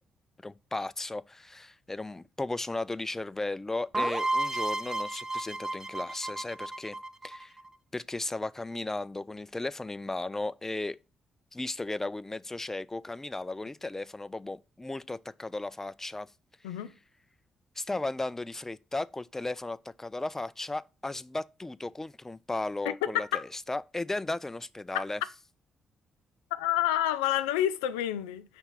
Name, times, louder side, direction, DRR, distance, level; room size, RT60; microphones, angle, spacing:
voice 1, 0.4-6.9 7.2-7.6 7.9-11.0 11.5-16.3 17.8-25.2, left 2 dB, 15° left, 0.4 m, -35 dB
sound 1, 3.9-7.7, right 2 dB, 25° right, 0.8 m, -32 dB
voice 2, 23.0-23.4 24.9-25.0 26.6-28.6, left 12 dB, 85° left, 0.4 m, -29 dB
5.6 x 3.6 x 5.6 m
hypercardioid pair, 45°, 2 cm